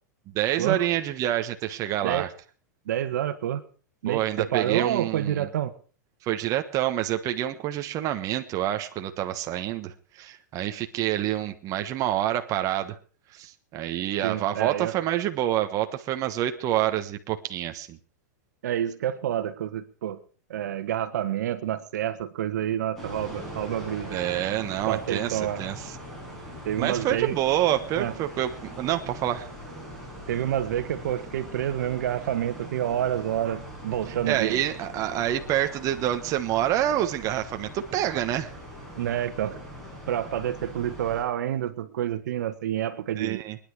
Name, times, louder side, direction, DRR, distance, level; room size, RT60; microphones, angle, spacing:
voice 1, 0.3-2.3 4.1-5.5 6.2-13.0 13.3-18.0 24.1-26.0 26.8-29.5 34.3-38.5 43.1-43.6, right 12 dB, 35° right, 7 dB, 1.3 m, -27 dB
voice 2, 2.9-3.6 4.0-5.7 14.2-14.9 18.6-20.2 20.5-24.2 24.8-25.6 26.6-27.3 28.0-28.1 30.3-34.6 39.0-39.6 40.1-43.4, right 11 dB, 75° right, 11 dB, 1.5 m, -28 dB
sound 1, 23.0-41.2, equal, 5° left, 7.3 m, -41 dB
22.5 x 10.5 x 4.9 m, 0.40 s
hypercardioid pair, 130°, 10 cm